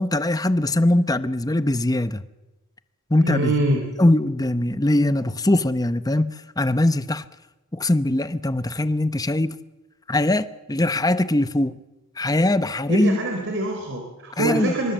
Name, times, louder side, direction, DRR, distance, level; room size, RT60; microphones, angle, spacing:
voice 1, 0.0-2.2 3.1-3.5 4.0-7.2 7.7-9.5 10.1-11.8 12.2-13.2 14.4-14.7, left 1 dB, 15° left, 0.9 m, -21 dB
voice 2, 3.2-3.9 12.9-14.9, right 1 dB, 55° right, 3.7 m, -24 dB
25.0 x 24.5 x 7.9 m
head